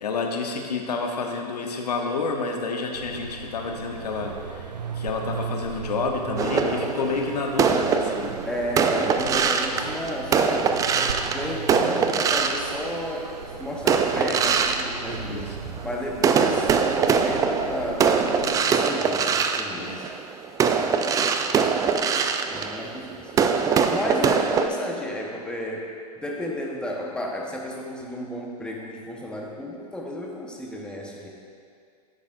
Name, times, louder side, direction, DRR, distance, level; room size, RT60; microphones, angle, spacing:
voice 1, 0.0-4.7 5.0-8.4 15.2-15.6 19.8-20.0 21.7-21.8, left 4 dB, 75° left, 2 dB, 1.0 m, -29 dB
sound 1, 2.9-18.6, right 6 dB, 90° right, 0.6 m, -38 dB
sound 2, 6.4-13.3 13.8-15.8 16.2-24.7, right 6 dB, 15° right, 0.4 m, -23 dB
voice 2, 8.4-10.8 11.2-15.5 15.8-20.1 22.5-25.9 26.2-31.3, left 1 dB, 5° left, -2 dB, 1.1 m, -32 dB
10.5 x 8.6 x 2.6 m, 2.2 s
hypercardioid pair, 105°, 21 cm